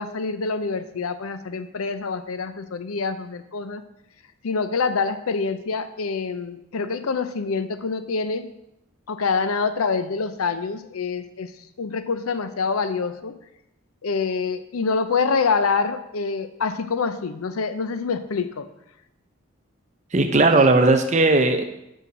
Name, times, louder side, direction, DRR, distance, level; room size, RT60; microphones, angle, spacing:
voice 1, 0.0-3.8 4.4-8.5 9.1-11.5 11.8-13.4 14.0-18.7, left 4 dB, 90° left, 11 dB, 0.6 m, -26 dB
voice 2, 20.1-21.6, right 2 dB, 35° right, 6 dB, 0.6 m, -17 dB
5.7 x 5.5 x 6.2 m, 0.84 s
head